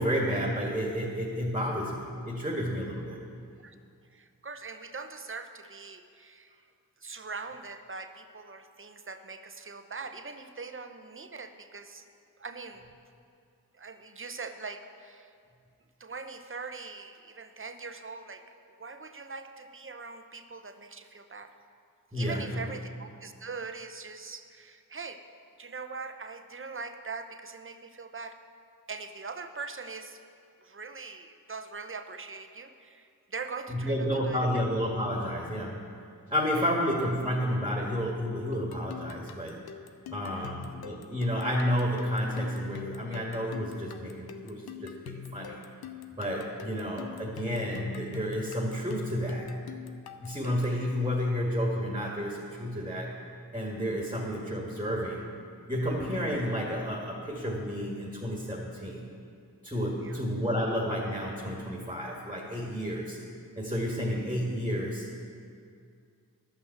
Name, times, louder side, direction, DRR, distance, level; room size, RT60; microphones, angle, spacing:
voice 1, 0.0-3.2 22.1-22.6 33.7-35.9 36.3-39.6 40.1-45.6 46.2-49.5 50.2-53.2 53.5-55.3 55.7-59.1 59.6-63.2 63.6-65.1, equal, 10° right, -2 dB, 1.8 m, -31 dB
voice 2, 4.1-6.5 7.0-12.0 12.4-12.9 13.8-15.3 16.0-18.4 18.8-21.5 22.1-25.2 25.6-28.4 28.9-30.2 30.6-34.5 40.3-40.5 60.0-60.2, right 4 dB, 35° right, 8 dB, 0.8 m, -42 dB
sound 1, 38.5-50.8, left 9 dB, 90° left, 0.6 m, -44 dB
11.5 x 5.8 x 7.8 m, 2.3 s
cardioid pair, 45°, 36 cm